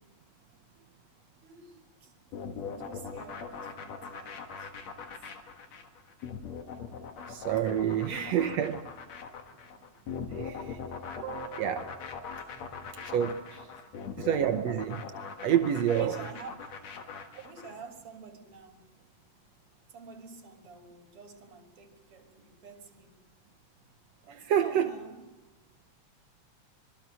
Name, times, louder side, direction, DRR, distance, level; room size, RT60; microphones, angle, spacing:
voice 1, 1.4-2.1 2.6-5.2 8.1-8.5 12.9-13.0 13.5-13.8 15.9-16.6 17.4-18.9 19.9-23.2 24.2-25.3, right 4 dB, 50° right, 3.5 m, -49 dB
sound 1, 2.3-17.8, left 6 dB, 65° left, 2.8 m, -41 dB
voice 2, 7.3-8.8 10.3-10.8 11.2-12.0 13.0-13.4 14.2-15.1 15.4-16.1 24.5-24.9, right 9 dB, 70° right, 1.9 m, -28 dB
25.0 x 22.5 x 6.3 m
omnidirectional pair, 3.3 m